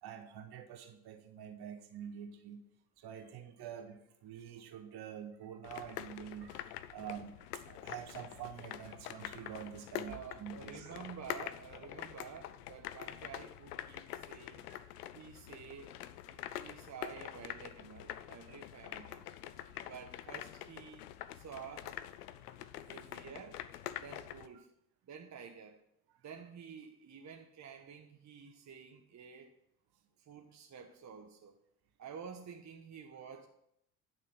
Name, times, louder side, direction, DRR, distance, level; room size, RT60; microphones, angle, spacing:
voice 1, 0.0-2.6 3.0-11.0 14.7-14.9 16.6-16.8 18.4-18.6 19.5-19.9 22.4-22.7 26.1-26.2, right 9 dB, 55° right, 6 dB, 1.7 m, -47 dB
sound 1, 5.6-24.5, left 12 dB, 80° left, 0.6 m, -46 dB
voice 2, 10.0-14.7 15.1-16.0 16.3-19.3 19.8-22.0 22.9-23.6 24.0-24.7 25.0-25.8 26.2-29.5 30.2-31.6 32.0-33.5, right 6 dB, 35° right, 3 dB, 1.3 m, -50 dB
10.5 x 6.3 x 5.9 m, 0.74 s
hypercardioid pair, 55°, 46 cm